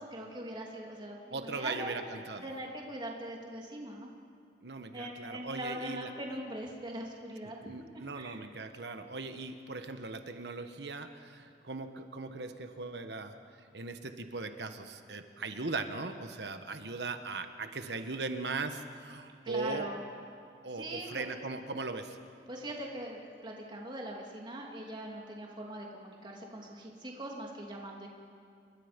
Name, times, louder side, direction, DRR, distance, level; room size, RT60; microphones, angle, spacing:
voice 1, 0.0-1.9 2.4-4.1 4.9-7.7 8.1-8.4 19.4-20.0 20.7-21.3 22.5-28.1, right 1 dB, 25° right, -1 dB, 2.9 m, -41 dB
voice 2, 1.3-2.5 4.6-6.1 7.6-13.4 13.7-19.9 20.6-22.2, right 3 dB, 70° right, 7 dB, 1.3 m, -39 dB
28.5 x 23.0 x 5.3 m, 2.3 s
head